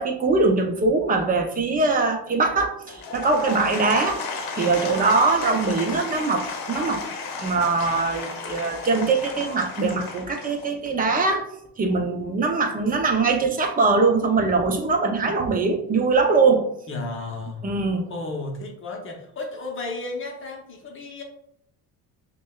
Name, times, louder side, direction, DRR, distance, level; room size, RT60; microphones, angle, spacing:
voice 1, 0.0-4.2 4.5-7.0 7.4-11.5 11.8-16.6 17.6-18.1, right 3 dB, 25° right, 3 dB, 0.6 m, -22 dB
Applause / Crowd, 2.8-11.0, left 4 dB, 65° left, 0.9 m, -33 dB
voice 2, 16.9-17.7 18.1-21.2, left 2 dB, 35° left, 2 dB, 0.8 m, -33 dB
6.0 x 2.2 x 2.3 m, 0.71 s
cardioid pair, 120°, 37 cm